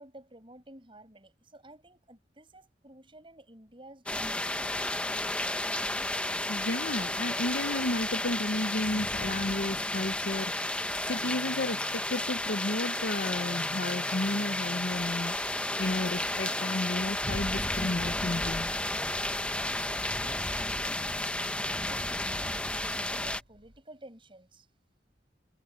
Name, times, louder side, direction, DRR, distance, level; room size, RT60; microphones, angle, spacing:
voice 1, 0.0-5.0 19.5-24.7, right 1 dB, 30° right, 6.5 m, -52 dB
sound 1, 4.1-23.4, left 1 dB, 5° left, 1.0 m, -32 dB
voice 2, 6.5-10.8 11.0-18.7, left 2 dB, 60° left, 0.9 m, -33 dB
sound 2, 10.7-23.8, equal, 70° right, 4.9 m, -54 dB
head